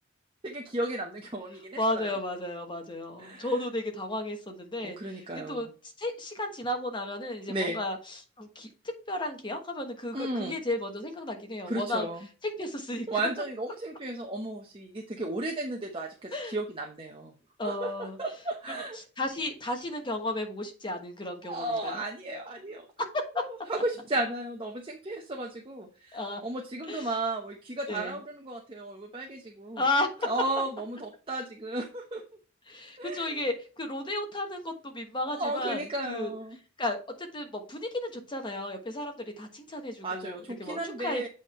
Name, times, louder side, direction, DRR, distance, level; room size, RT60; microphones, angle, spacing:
voice 1, 0.4-2.1 3.2-3.5 4.8-5.7 7.5-7.8 10.1-10.5 11.7-12.3 13.1-17.3 17.6-19.0 21.5-23.1 23.4-29.9 30.2-32.2 33.0-33.4 35.2-36.6 40.0-41.3, right 2 dB, 25° right, 0 dB, 1.0 m, -34 dB
voice 2, 1.8-5.0 5.5-5.7 6.0-8.7 9.1-12.1 12.4-13.1 16.3-16.5 17.6-18.2 19.2-22.0 23.1-23.4 26.1-26.4 26.9-27.1 27.9-28.2 29.8-30.3 32.7-35.8 36.1-36.3 36.8-41.3, left 1 dB, 25° left, 4 dB, 1.2 m, -33 dB
8.2 x 3.6 x 4.2 m, 0.35 s
head